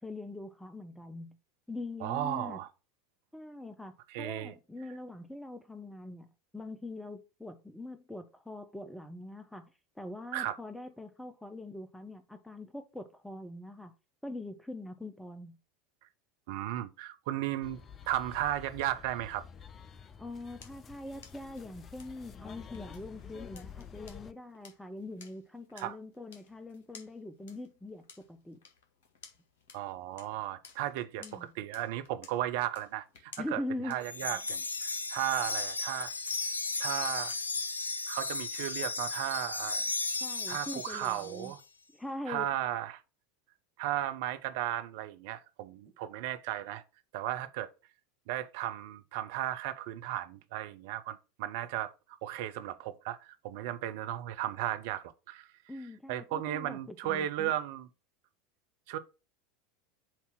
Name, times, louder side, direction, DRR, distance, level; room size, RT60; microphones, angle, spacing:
voice 1, 0.0-1.4 1.7-2.6 3.3-6.3 6.5-9.7 10.0-13.9 14.2-15.6 20.2-28.6 31.2-31.5 33.4-34.0 34.3-34.4 40.2-41.5 41.9-42.5 55.7-57.5, left 2 dB, 5° left, 0.8 m, -43 dB
voice 2, 2.0-2.7 4.1-4.5 10.3-10.5 16.5-19.4 25.8-25.9 29.7-36.1 36.8-37.3 38.1-39.9 40.5-41.6 42.3-43.0 43.8-46.8 47.1-47.7 48.3-55.5 56.1-57.9 58.9-59.0, right 13 dB, 55° right, 0.7 m, -35 dB
sound 1, 17.6-24.3, left 7 dB, 30° left, 0.6 m, -49 dB
sound 2, 20.1-37.8, left 5 dB, 60° left, 1.9 m, -58 dB
Wind chime, 34.0-41.5, left 3 dB, 80° left, 0.5 m, -35 dB
7.3 x 2.9 x 5.8 m
figure-of-eight pair, 80°, 0 cm